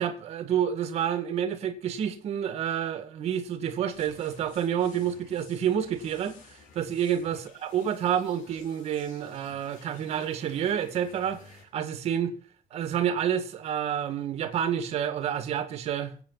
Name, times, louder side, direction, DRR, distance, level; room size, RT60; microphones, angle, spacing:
voice 1, 0.0-6.4 6.7-11.4 11.7-12.3 12.7-16.1, right 9 dB, 50° right, 1.9 m, -29 dB
sound 1, 3.9-11.6, left 5 dB, 75° left, 5.9 m, -54 dB
24.0 x 8.7 x 4.0 m
cardioid pair, 175°, 14 cm